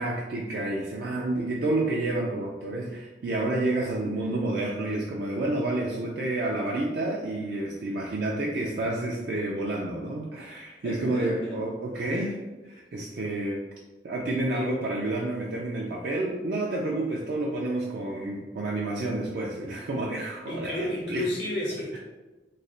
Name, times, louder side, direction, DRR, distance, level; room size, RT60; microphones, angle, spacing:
voice 1, 0.0-13.6 14.0-21.2, right 2 dB, 60° right, -3 dB, 0.4 m, -29 dB
voice 2, 10.8-11.6 12.0-12.3 20.5-22.0, left 1 dB, 85° left, -3 dB, 1.1 m, -32 dB
3.1 x 2.1 x 3.7 m, 1.1 s
head